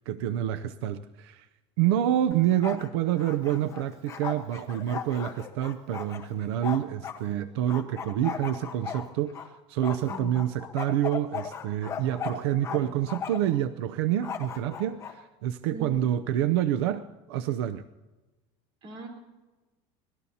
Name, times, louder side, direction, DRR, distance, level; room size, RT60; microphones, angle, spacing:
voice 1, 0.0-1.5 1.8-17.8, right 11 dB, 85° right, 12 dB, 0.6 m, -28 dB
Bark, 2.3-2.9 3.2-7.2 7.7-9.5 9.8-12.8 13.1-13.6 14.2-15.1, left 7 dB, 20° left, 1.2 m, -37 dB
voice 2, 10.0-10.3 12.7-13.0 15.7-16.0 18.8-19.1, right 2 dB, 40° right, 2 dB, 4.0 m, -40 dB
26.0 x 19.0 x 2.8 m, 1.2 s
cardioid pair, 170°, 13 cm